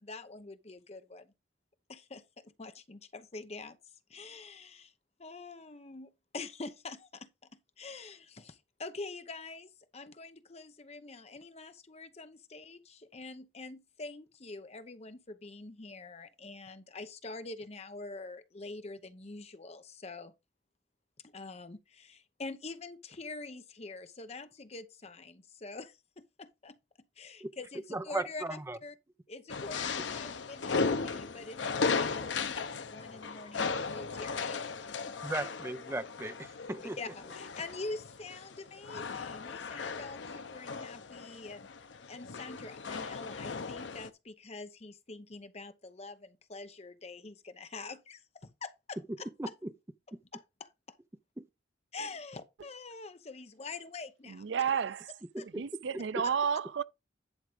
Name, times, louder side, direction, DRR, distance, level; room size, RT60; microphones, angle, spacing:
voice 1, 0.0-1.3 1.9-3.8 4.1-4.9 5.2-7.3 7.8-20.3 21.2-26.8 27.2-28.9 29.3-34.7 35.1-35.2 37.0-41.7 42.1-49.5 50.3-50.7 51.9-54.4 55.4-55.5 56.2-56.3, left 3 dB, 35° left, 0.8 m, -45 dB
voice 2, 27.4-28.8 35.2-37.0 49.1-49.7 51.4-51.5 55.3-55.6, right 2 dB, 15° right, 0.5 m, -37 dB
sound 1, 29.5-44.1, left 4 dB, 80° left, 0.8 m, -36 dB
voice 3, 54.3-55.1 55.4-56.8, right 7 dB, 75° right, 0.4 m, -31 dB
10.5 x 3.6 x 5.1 m
head